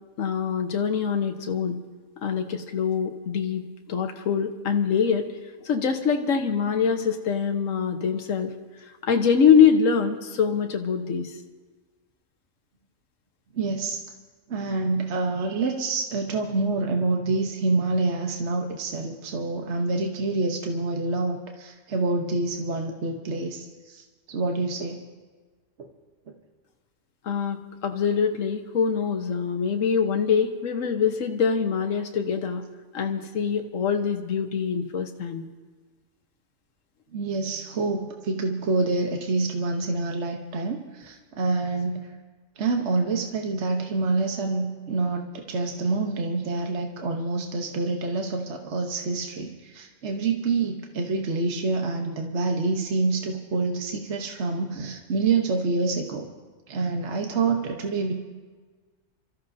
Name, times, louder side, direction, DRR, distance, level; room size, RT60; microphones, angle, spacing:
voice 1, 0.2-1.8 2.2-5.3 5.6-8.5 9.0-11.3 27.2-32.6 32.9-35.4, left 6 dB, 75° left, 4 dB, 1.4 m, -24 dB
voice 2, 13.5-14.0 14.5-25.0 25.8-25.9 37.1-42.1 42.6-56.3 56.7-58.1, right 3 dB, 60° right, 2 dB, 1.3 m, -27 dB
27.5 x 14.0 x 2.7 m, 1.4 s
omnidirectional pair, 1.4 m